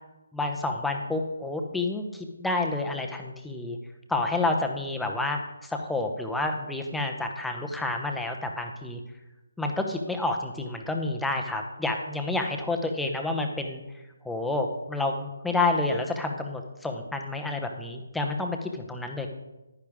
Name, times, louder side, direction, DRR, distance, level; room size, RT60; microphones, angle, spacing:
voice 1, 0.3-3.8 4.1-9.0 9.6-13.8 14.2-19.3, left 2 dB, 5° left, 3 dB, 0.9 m, -29 dB
10.5 x 10.0 x 3.6 m, 1.0 s
figure-of-eight pair, 150°, 0 cm